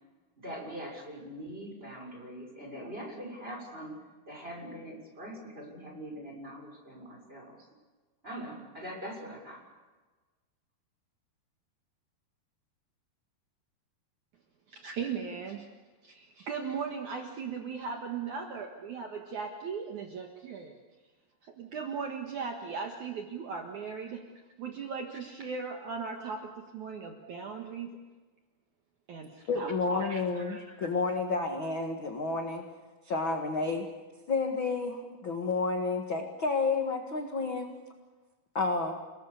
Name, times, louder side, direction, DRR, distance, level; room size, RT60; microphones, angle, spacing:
voice 1, 0.4-4.0 4.3-7.7 8.2-9.6, equal, 15° right, 0 dB, 6.4 m, -42 dB
voice 2, 14.7-15.7 16.0-20.8 21.4-24.3 24.6-28.0 29.1-29.7 30.0-30.7, right 5 dB, 60° right, 2 dB, 2.7 m, -38 dB
voice 3, 29.5-32.6 33.0-33.9 34.3-37.7 38.5-38.9, left 4 dB, 40° left, 3 dB, 1.9 m, -30 dB
29.5 x 20.0 x 6.9 m, 1.3 s
omnidirectional pair, 4.5 m